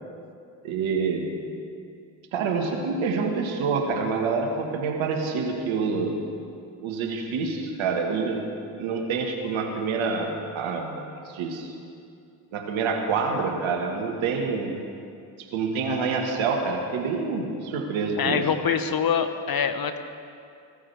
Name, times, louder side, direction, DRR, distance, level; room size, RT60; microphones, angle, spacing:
voice 1, 0.6-1.4 2.3-6.1 6.8-8.4 8.8-11.0 11.2-11.7 12.5-14.7 15.5-18.5, right 4 dB, 70° right, 2 dB, 1.8 m, -27 dB
voice 2, 18.2-20.0, left 7 dB, 45° left, 9 dB, 1.0 m, -25 dB
17.0 x 13.5 x 3.5 m, 2.4 s
hypercardioid pair, 40°, 49 cm